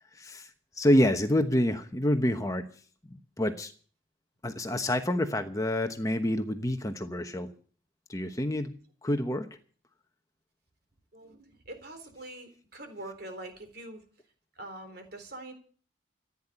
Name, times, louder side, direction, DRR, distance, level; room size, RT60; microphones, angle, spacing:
voice 1, 0.1-0.5 0.8-2.7 3.4-3.7 4.4-7.5 8.1-8.7 9.0-9.5, left 1 dB, 15° left, 6 dB, 1.1 m, -27 dB
voice 2, 11.1-14.0 14.6-15.5, right 1 dB, 50° right, 6 dB, 4.0 m, -44 dB
15.0 x 9.9 x 8.6 m, 0.43 s
head